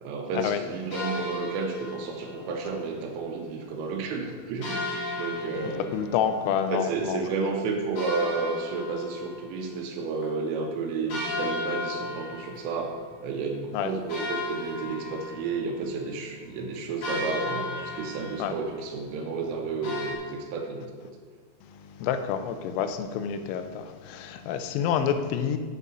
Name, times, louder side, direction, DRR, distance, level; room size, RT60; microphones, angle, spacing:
voice 1, 0.0-4.8 5.2-5.9 6.7-20.9, right 4 dB, 80° right, 2 dB, 3.3 m, -31 dB
sound 1, 0.9-2.6 4.6-7.1 8.0-10.0 10.2-10.3 11.1-13.1 13.5-13.6 14.1-20.2, left 2 dB, 50° left, 2.9 m, -35 dB
voice 2, 5.6-7.2 13.7-13.9 18.4-18.5 21.6-25.6, left 8 dB, 85° left, 9 dB, 3.1 m, -28 dB
8.2 x 7.5 x 5.4 m, 1.5 s
omnidirectional pair, 6.0 m